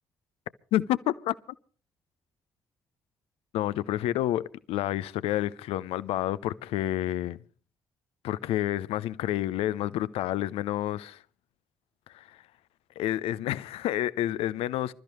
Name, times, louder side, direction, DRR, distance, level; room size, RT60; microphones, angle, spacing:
voice 1, 0.7-1.3 3.5-7.4 8.2-11.2 12.1-12.4 13.0-14.9, left 13 dB, 65° left, 0.7 m, -29 dB
26.5 x 13.5 x 3.1 m
figure-of-eight pair, 40°, 11 cm